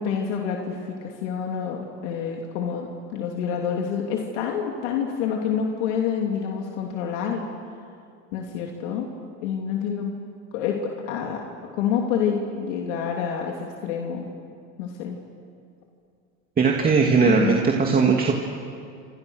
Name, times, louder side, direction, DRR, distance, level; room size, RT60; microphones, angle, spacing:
voice 1, 0.0-7.4 8.3-9.1 9.4-10.1 10.5-11.4 11.7-14.3 14.8-15.2 17.2-17.6, left 7 dB, 90° left, 1 dB, 2.9 m, -27 dB
voice 2, 16.6-18.3, right 4 dB, 25° right, 0 dB, 2.4 m, -19 dB
28.5 x 26.5 x 6.4 m, 2.4 s
supercardioid pair, 125°, 35 cm